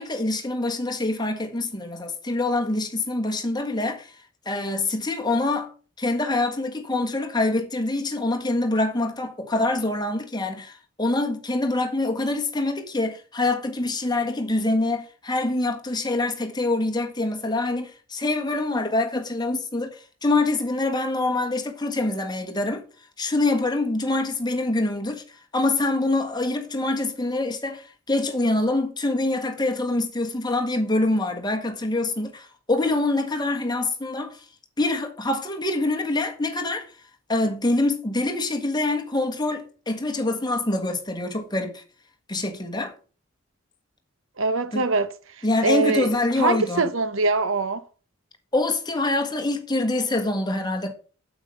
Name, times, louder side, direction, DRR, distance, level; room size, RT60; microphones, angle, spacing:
voice 1, 0.0-4.2 4.4-5.7 6.0-22.8 23.2-25.2 25.5-34.4 34.8-36.9 37.3-41.8 42.3-42.9 44.7-44.8 45.4-46.8 48.5-50.9, left 2 dB, 20° left, 1.6 m, -25 dB
voice 2, 44.4-46.1 46.4-47.8, right 3 dB, 65° right, 1.0 m, -23 dB
8.7 x 8.3 x 5.1 m
head